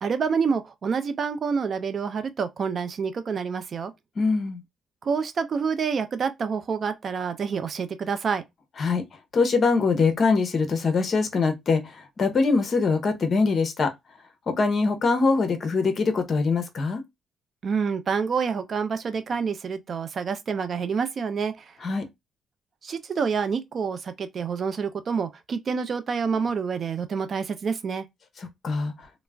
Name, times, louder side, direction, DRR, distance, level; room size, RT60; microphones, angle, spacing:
voice 1, 0.0-3.9 5.0-8.4 17.6-21.7 22.8-28.0, right 6 dB, 50° right, 0.5 m, -27 dB
voice 2, 4.2-4.6 8.8-9.0 9.3-13.9 14.5-17.0 21.8-22.0 28.6-28.9, left 4 dB, 45° left, 0.7 m, -23 dB
2.3 x 2.0 x 3.3 m
cardioid pair, 90°, 0 cm